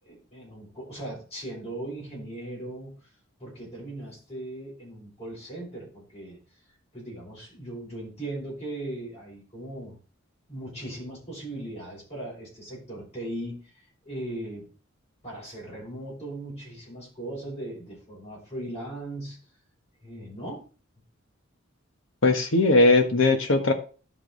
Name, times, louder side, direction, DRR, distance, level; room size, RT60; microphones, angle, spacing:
voice 1, 0.0-2.9 3.4-6.4 6.9-10.0 10.5-14.7 15.2-19.4 20.0-20.7, right 1 dB, 30° left, -5 dB, 5.5 m, -38 dB
voice 2, 22.2-23.7, left 2 dB, 65° left, 6 dB, 1.3 m, -19 dB
11.5 x 5.2 x 3.9 m, 0.37 s
head